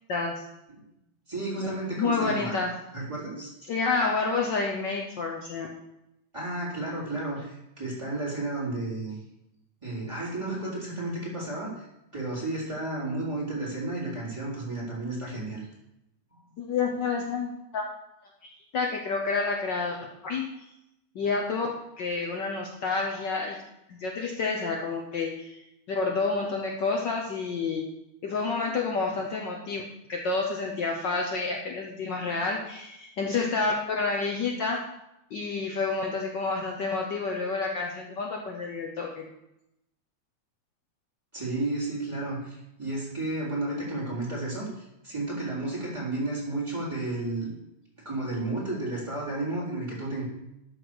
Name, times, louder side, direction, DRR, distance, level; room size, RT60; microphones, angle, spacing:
voice 1, 1.3-2.5 2.9-3.5 6.3-9.2 9.8-11.9 12.1-15.7 41.3-47.5 48.0-50.2, right 2 dB, 10° right, -6 dB, 3.6 m, -32 dB
voice 2, 1.9-2.7 3.7-5.7 16.6-17.9 18.4-20.5 21.1-21.7 22.0-23.6 23.9-25.6 25.9-27.8 28.2-29.8 30.1-34.8 35.3-39.2, left 4 dB, 75° left, 1 dB, 1.0 m, -29 dB
12.0 x 4.8 x 6.3 m, 0.85 s
omnidirectional pair, 3.4 m